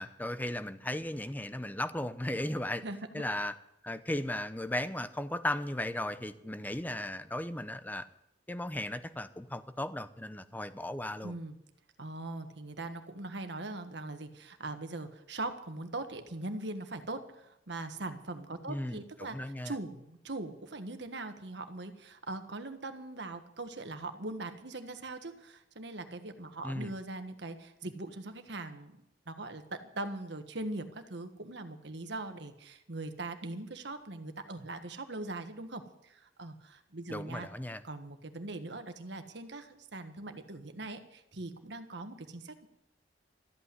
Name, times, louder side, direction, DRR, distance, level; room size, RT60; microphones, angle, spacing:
voice 1, 0.0-2.8 3.1-3.5 3.8-8.1 8.5-11.3 18.7-19.7 26.6-26.9 37.1-37.8, left 1 dB, 10° left, 12 dB, 0.7 m, -36 dB
voice 2, 2.8-3.2 11.2-11.6 12.0-28.9 29.3-37.5 37.8-42.7, right 2 dB, 65° right, 8 dB, 1.4 m, -41 dB
13.5 x 8.6 x 9.6 m, 0.81 s
head